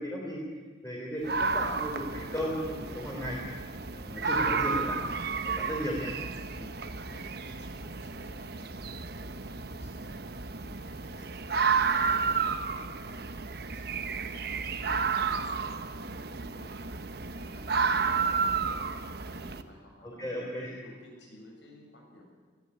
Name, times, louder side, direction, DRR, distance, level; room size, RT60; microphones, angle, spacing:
voice 1, 0.0-3.4 3.9-5.0 5.4-6.1 20.0-20.7, equal, 15° left, -3 dB, 3.7 m, -35 dB
sound 1, 1.2-19.6, right 5 dB, 60° right, 1.1 m, -32 dB
voice 2, 6.5-20.4 20.8-22.4, left 1 dB, 75° left, 0 dB, 7.9 m, -55 dB
21.5 x 14.5 x 9.8 m, 1.5 s
head